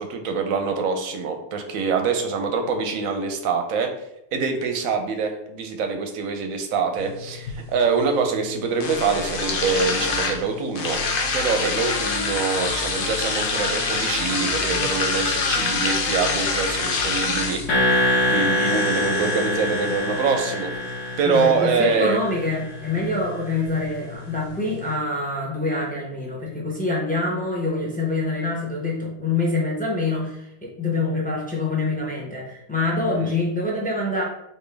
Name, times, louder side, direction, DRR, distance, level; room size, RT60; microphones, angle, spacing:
voice 1, 0.0-3.9 4.3-11.0 11.3-20.7 21.2-22.2 33.1-33.3, right 5 dB, 70° right, 4 dB, 0.9 m, -25 dB
sound 1, 7.0-25.0, left 4 dB, 75° left, 0.5 m, -28 dB
voice 2, 14.7-15.2 21.2-34.2, left 2 dB, 15° left, -3 dB, 0.3 m, -25 dB
sound 2, 17.7-22.6, left 1 dB, 55° left, 1.2 m, -24 dB
4.4 x 2.7 x 3.2 m, 0.80 s
omnidirectional pair, 1.7 m